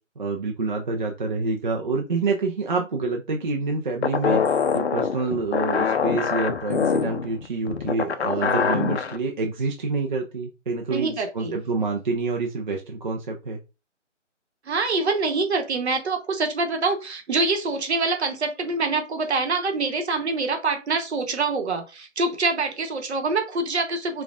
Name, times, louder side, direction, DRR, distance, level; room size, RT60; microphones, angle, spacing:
voice 1, 0.2-13.6, right 3 dB, 40° right, 1 dB, 0.5 m, -27 dB
sound 1, 4.0-9.2, left 6 dB, 60° left, 0.5 m, -24 dB
voice 2, 10.9-11.6 14.7-24.2, right 3 dB, 60° right, 5 dB, 1.0 m, -25 dB
5.2 x 2.4 x 2.4 m, 0.29 s
hypercardioid pair, 160°, 37 cm